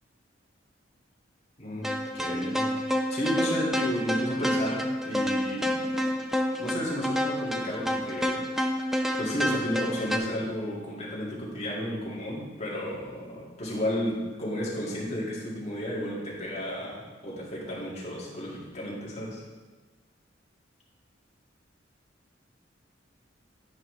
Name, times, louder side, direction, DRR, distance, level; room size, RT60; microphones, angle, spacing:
voice 1, 1.6-2.7 3.1-6.2 6.6-8.4 8.9-19.4, equal, 35° left, -6 dB, 2.1 m, -33 dB
sound 1, 1.8-10.2, equal, ahead, 0.4 m, -29 dB
10.5 x 5.6 x 3.3 m, 1.3 s
head